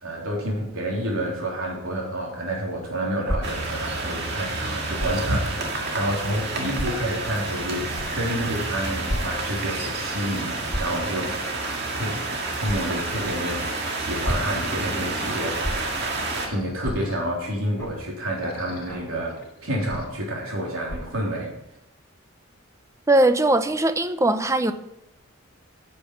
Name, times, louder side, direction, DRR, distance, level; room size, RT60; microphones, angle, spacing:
voice 1, 0.0-13.6 14.0-16.0 16.5-19.4 19.6-21.5, right 1 dB, 85° right, 3.6 m, -29 dB
sound 1, 3.2-3.4 4.9-5.2 5.9-6.0 6.7-6.9 7.9-8.0 9.0-9.2 9.5-9.7 10.6-10.9 12.6-12.8 14.0-14.5 15.6-15.7 16.8-17.0 17.8-18.0 18.9-19.1 19.9-20.1 20.8-21.1, equal, 15° left, 4.9 m, -30 dB
sound 2, 3.4-16.5, right 2 dB, 55° right, 2.1 m, -29 dB
sound 3, 13.7-17.5 17.9-20.1, left 1 dB, 50° left, 1.6 m, -46 dB
voice 2, 23.1-24.7, right 1 dB, 15° right, 0.6 m, -20 dB
10.5 x 6.8 x 6.6 m
head